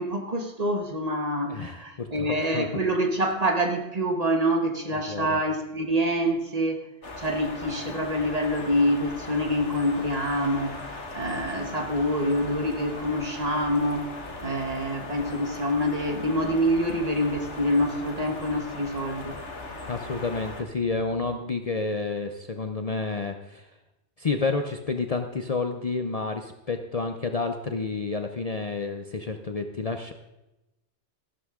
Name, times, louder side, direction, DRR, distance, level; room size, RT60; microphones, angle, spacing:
voice 1, 0.0-6.9 7.2-14.1 14.4-19.4, equal, 35° right, 4 dB, 1.3 m, -26 dB
voice 2, 1.5-2.7 4.9-5.4 19.9-23.7 24.2-30.1, left 4 dB, 40° left, 6 dB, 0.7 m, -30 dB
sound 1, 7.0-20.6, left 2 dB, 80° left, 1.9 m, -39 dB
sound 2, 14.2-21.4, left 2 dB, 75° right, 5.2 m, -50 dB
14.0 x 12.5 x 3.7 m, 0.96 s
omnidirectional pair, 1.2 m